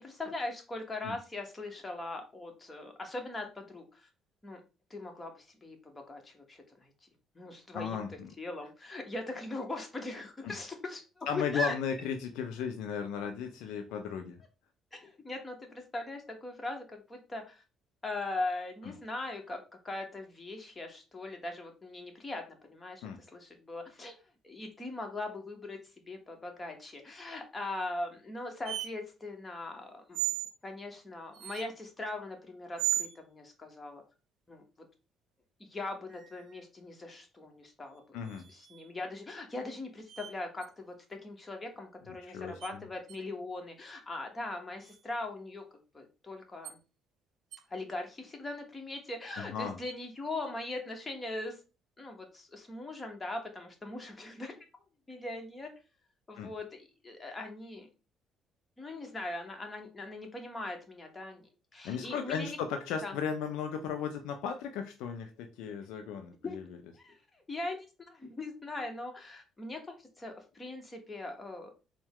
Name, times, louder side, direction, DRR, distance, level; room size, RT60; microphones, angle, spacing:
voice 1, 0.0-4.1 4.4-4.6 4.9-6.9 7.3-8.0 8.4-11.7 14.9-17.6 18.0-23.0 23.3-24.1 24.4-25.8 26.1-30.2 30.6-34.0 34.5-34.6 35.7-38.2 38.5-45.6 45.9-46.8 47.7-51.6 52.0-54.6 55.1-55.7 56.3-57.9 58.8-62.6 63.0-63.1 66.4-66.6 67.0-67.2 67.5-71.7, left 2 dB, 25° left, 3 dB, 1.4 m, -40 dB
voice 2, 7.7-8.3 10.4-10.5 11.3-14.4 18.8-18.9 23.0-23.2 38.1-38.5 42.2-42.9 49.4-49.8 56.4-56.5 61.8-66.6, left 7 dB, 70° left, 5 dB, 0.4 m, -36 dB
sound 1, 28.6-28.9 30.1-30.5 31.3-31.7 32.8-33.2 36.1-36.6 38.2-38.9 40.1-40.3 40.6-40.7 42.6-42.7 43.1-43.2 44.8-45.0 46.6-46.8 47.5-47.6, right 13 dB, 65° right, 0.4 m, -36 dB
4.1 x 2.3 x 3.6 m, 0.32 s
hypercardioid pair, 50°, 0 cm